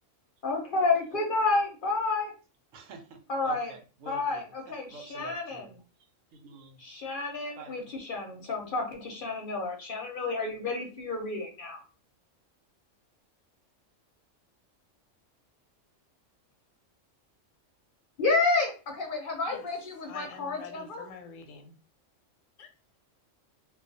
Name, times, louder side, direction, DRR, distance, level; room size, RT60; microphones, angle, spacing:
voice 1, 0.4-2.3 3.3-3.7 4.1-5.6 6.8-11.8 18.2-21.1, left 3 dB, 55° left, 2 dB, 0.7 m, -30 dB
voice 2, 2.7-3.2 3.4-6.8 7.6-7.9, right 4 dB, 90° right, 5 dB, 1.0 m, -48 dB
voice 3, 20.1-21.7 22.6-22.7, left 6 dB, 80° left, 5 dB, 0.9 m, -46 dB
2.3 x 2.3 x 2.6 m, 0.34 s
omnidirectional pair, 1.3 m